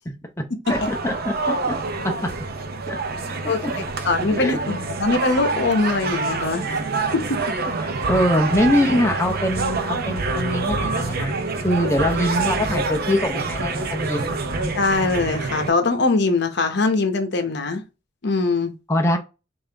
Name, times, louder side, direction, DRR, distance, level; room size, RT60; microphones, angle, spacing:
voice 1, 0.7-1.8 2.0-2.3 2.9-3.0 3.4-3.7 4.0-4.6 7.8-11.4 11.6-14.4 18.9-19.2, left 1 dB, 15° left, 0.6 m, -23 dB
sound 1, 0.7-15.7, right 3 dB, 50° right, 0.6 m, -26 dB
voice 2, 3.5-6.7 7.1-7.4 7.7-7.8 14.8-17.8 18.2-18.7, left 3 dB, 60° left, 0.8 m, -22 dB
5.6 x 2.6 x 3.4 m
head